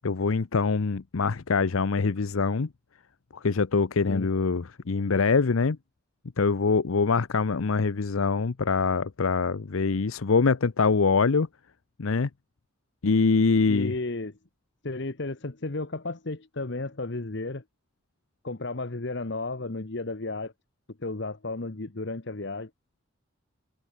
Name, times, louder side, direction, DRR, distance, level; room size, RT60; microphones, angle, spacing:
voice 1, 0.0-2.7 3.4-5.8 6.4-11.5 12.0-12.3 13.0-13.9, left 4 dB, 80° left, 0.7 m, -24 dB
voice 2, 13.7-14.4 14.8-17.6 18.4-20.5 21.0-22.7, left 2 dB, 55° left, 1.1 m, -33 dB
head